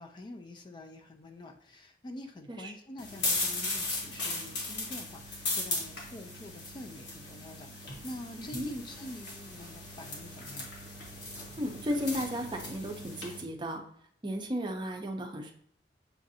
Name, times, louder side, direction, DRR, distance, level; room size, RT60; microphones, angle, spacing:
voice 1, 0.0-10.7, left 1 dB, 25° left, 4 dB, 0.4 m, -46 dB
sound 1, 3.0-13.4, left 2 dB, 80° left, 1.3 m, -37 dB
voice 2, 11.6-13.8 14.2-15.5, equal, 25° right, 4 dB, 0.6 m, -34 dB
6.9 x 2.5 x 2.7 m, 0.66 s
head